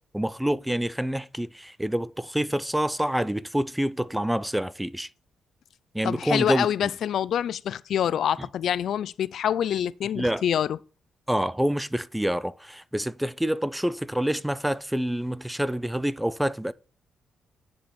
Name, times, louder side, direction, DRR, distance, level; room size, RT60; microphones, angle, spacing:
voice 1, 0.1-5.1 5.9-6.7 10.2-10.4 11.3-16.7, right 1 dB, 5° right, 0.4 m, -27 dB
voice 2, 6.0-10.8, left 9 dB, 70° left, 0.3 m, -26 dB
10.0 x 5.2 x 4.2 m
cardioid pair, 85°, 0 cm